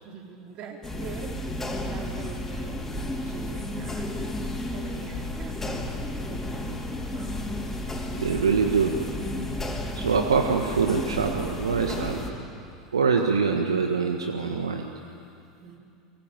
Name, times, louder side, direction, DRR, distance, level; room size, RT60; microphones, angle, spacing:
voice 1, 0.0-4.1 4.7-5.8 6.1-7.6 15.6-15.8, right 6 dB, 45° right, 1 dB, 4.2 m, -44 dB
sound 1, 0.8-12.3, left 1 dB, 10° left, 4.5 m, -32 dB
voice 2, 8.1-9.0 10.0-12.2 12.9-14.9, right 5 dB, 80° right, 3 dB, 1.5 m, -24 dB
24.0 x 23.0 x 9.0 m, 2.5 s
figure-of-eight pair, 80°, 3 cm